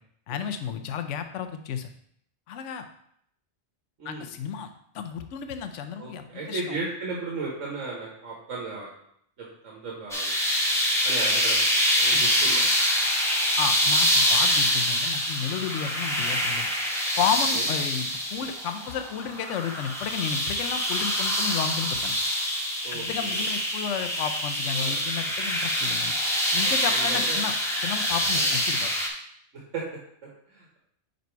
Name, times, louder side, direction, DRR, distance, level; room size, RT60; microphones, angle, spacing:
voice 1, 0.3-1.9 2.5-2.9 4.0-6.8 12.1-12.3 13.6-16.7 17.2-22.1 22.9-26.2 26.5-27.5 27.8-28.9, left 7 dB, 80° left, 8 dB, 1.0 m, -32 dB
voice 2, 4.0-4.3 6.0-8.9 9.4-10.4 11.0-11.6 12.0-12.7 17.5-17.7 22.8-23.5 24.7-25.0 26.6-27.4 28.4-28.5 29.7-29.8 30.2-30.8, right 3 dB, 85° right, -3 dB, 1.7 m, -35 dB
sound 1, 10.1-29.1, equal, ahead, 1.0 m, -25 dB
5.3 x 5.2 x 4.5 m, 0.68 s
omnidirectional pair, 1.3 m